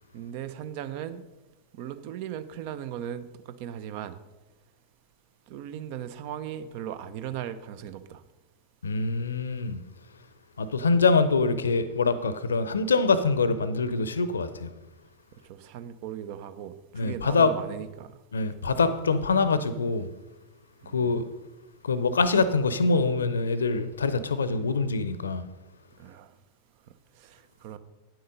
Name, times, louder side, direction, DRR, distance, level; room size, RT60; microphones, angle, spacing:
voice 1, 0.1-1.2 1.7-4.2 5.5-8.2 15.5-18.1 20.8-21.1 26.0-26.3 27.2-27.8, right 10 dB, 45° right, 0.7 m, -38 dB
voice 2, 8.8-9.8 10.6-14.7 16.9-17.5 18.3-20.1 20.9-21.3 21.8-25.4, left 4 dB, 70° left, 0.7 m, -24 dB
9.5 x 7.8 x 5.2 m
figure-of-eight pair, 90°, 0 cm